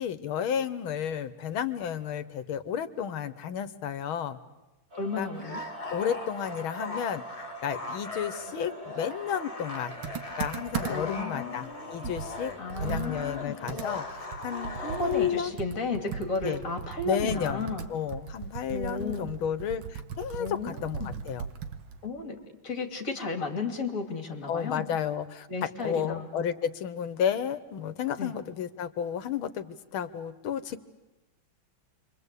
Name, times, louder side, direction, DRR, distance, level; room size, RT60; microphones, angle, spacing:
voice 1, 0.0-4.4 5.2-5.3 5.9-7.2 7.6-9.9 10.4-12.5 12.8-14.8 15.0-15.5 16.4-16.6 17.1-21.5 24.5-25.5 25.8-30.8, left 8 dB, 85° left, 12 dB, 2.0 m, -32 dB
voice 2, 4.9-5.6 10.8-12.1 12.6-13.6 14.8-17.9 18.7-19.3 20.4-21.1 22.0-24.9 25.5-26.3 28.2-28.3, left 3 dB, 40° left, 5 dB, 3.0 m, -34 dB
sound 1, 4.9-14.4, right 2 dB, 30° right, 4.0 m, -46 dB
sound 2, 5.3-15.5, left 3 dB, 15° left, 1.8 m, -39 dB
Computer keyboard, 10.0-11.2 11.6-11.7 12.0-15.3 15.6-22.1, right 7 dB, 75° right, 2.1 m, -38 dB
28.5 x 24.0 x 8.3 m, 1.0 s
omnidirectional pair, 2.2 m